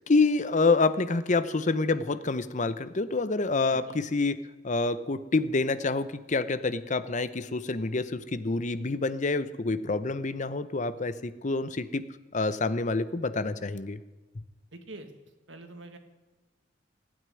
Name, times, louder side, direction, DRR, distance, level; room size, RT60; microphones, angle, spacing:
voice 1, 0.0-4.4 4.6-12.1 12.3-14.0, left 3 dB, 40° left, 14 dB, 0.7 m, -27 dB
voice 2, 14.7-15.1 15.5-16.0, right 2 dB, 85° right, 7 dB, 1.8 m, -45 dB
15.5 x 9.0 x 9.8 m, 1.2 s
head